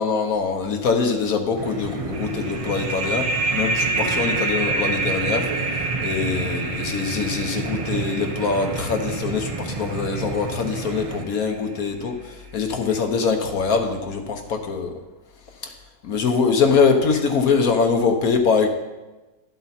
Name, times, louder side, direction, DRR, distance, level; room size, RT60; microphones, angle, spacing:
voice 1, 0.0-5.5 6.0-14.9 15.6-15.7 16.0-18.7, left 5 dB, 70° left, 4 dB, 1.3 m, -23 dB
sound 1, 1.5-11.2, right 4 dB, 50° right, 0.4 m, -31 dB
sound 2, 2.1-11.4, right 3 dB, 80° right, 1.8 m, -28 dB
11.5 x 8.0 x 4.3 m, 1.1 s
omnidirectional pair, 1.6 m